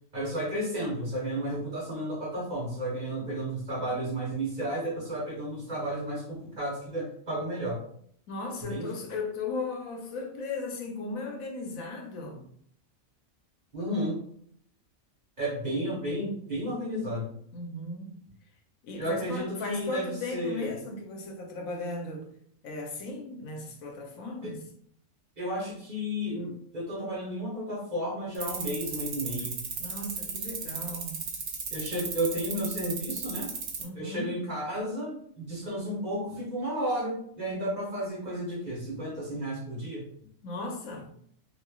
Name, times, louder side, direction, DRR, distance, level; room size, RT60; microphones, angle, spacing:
voice 1, 0.1-7.8 8.7-8.9 13.7-14.2 15.4-17.3 19.0-20.7 24.4-24.5 25.4-29.6 31.7-33.5 33.9-40.1, equal, 40° right, 0.8 m, -32 dB
voice 2, 8.3-12.5 17.5-18.2 18.8-22.3 22.6-24.6 29.8-31.2 33.8-34.4 40.4-41.2, left 3 dB, 85° left, 1.1 m, -36 dB
sound 1, 28.3-33.8, right 6 dB, 80° right, 1.1 m, -34 dB
3.0 x 2.7 x 2.3 m
omnidirectional pair, 1.4 m